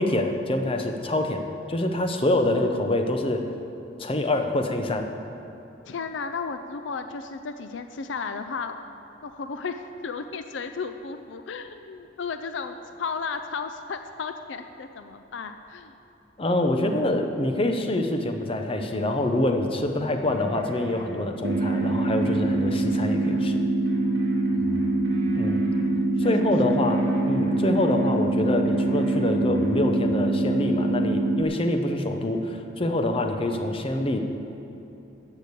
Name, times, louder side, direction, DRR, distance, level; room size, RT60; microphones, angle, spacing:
voice 1, 0.0-1.4 1.7-3.4 4.0-5.1 16.4-23.6 25.3-25.6 26.2-34.2, left 1 dB, 30° left, 5 dB, 0.7 m, -25 dB
voice 2, 5.9-8.8 9.2-15.9 24.5-25.5 26.2-26.3, left 5 dB, 70° left, 8 dB, 0.5 m, -34 dB
sound 1, 20.2-21.0 21.4-23.4 23.8-25.8 26.2-28.2 28.6-29.8, equal, 65° right, 2.0 m, -42 dB
sound 2, 21.4-31.4, right 2 dB, 80° right, 0.6 m, -24 dB
13.5 x 4.9 x 8.4 m, 2.9 s
head